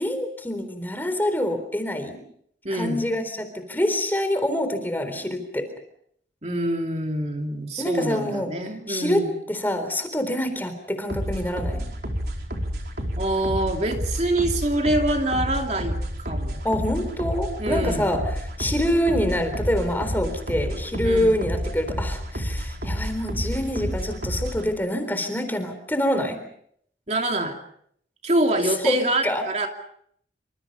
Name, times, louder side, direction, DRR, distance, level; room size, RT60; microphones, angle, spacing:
voice 1, 0.0-2.2 2.7-5.7 7.8-8.5 8.9-11.9 16.6-26.4 28.8-29.4, left 1 dB, 10° left, 8 dB, 3.9 m, -26 dB
voice 2, 2.6-3.0 6.4-9.3 13.2-16.6 17.6-18.1 21.0-21.4 27.1-27.6 28.2-29.7, right 1 dB, 40° right, 3 dB, 2.8 m, -25 dB
sound 1, 11.1-24.7, equal, 60° right, 4.5 m, -30 dB
27.5 x 26.5 x 5.6 m, 0.68 s
head